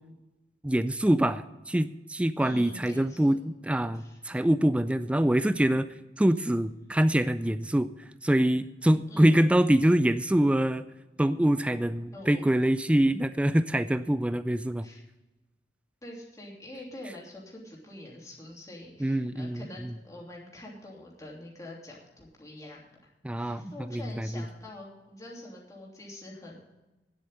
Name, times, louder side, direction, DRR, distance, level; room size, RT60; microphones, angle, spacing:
voice 1, 0.6-5.9 6.2-7.9 8.2-10.8 11.2-14.9 19.0-19.9 23.2-24.4, right 1 dB, 5° right, 12 dB, 0.3 m, -25 dB
voice 2, 2.4-3.3 3.9-4.2 9.1-9.4 12.1-12.5 14.8-15.0 16.0-22.9 23.4-26.6, left 1 dB, 20° left, -3 dB, 3.0 m, -45 dB
9.9 x 7.9 x 8.8 m, 1.0 s
head